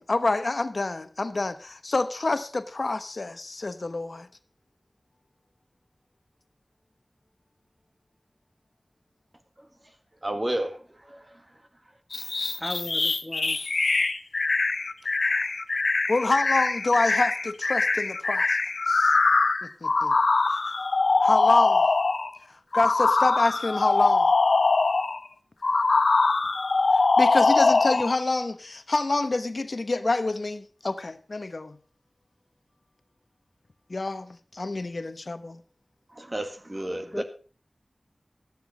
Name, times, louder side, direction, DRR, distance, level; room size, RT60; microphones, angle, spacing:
voice 1, 0.0-4.3 16.1-18.6 18.9-19.2 19.6-20.1 21.2-21.8 22.7-24.3 27.2-31.8 33.9-35.6, left 3 dB, 65° left, 0.9 m, -27 dB
voice 2, 10.2-11.4 36.1-37.2, right 1 dB, 30° right, 1.8 m, -32 dB
sound 1, 12.1-22.3 22.7-25.2 25.6-28.2, left 3 dB, 90° left, 0.8 m, -23 dB
voice 3, 12.6-13.6 37.1-37.2, left 1 dB, 20° left, 1.8 m, -35 dB
13.0 x 9.5 x 5.2 m
wide cardioid pair, 60°, 0 cm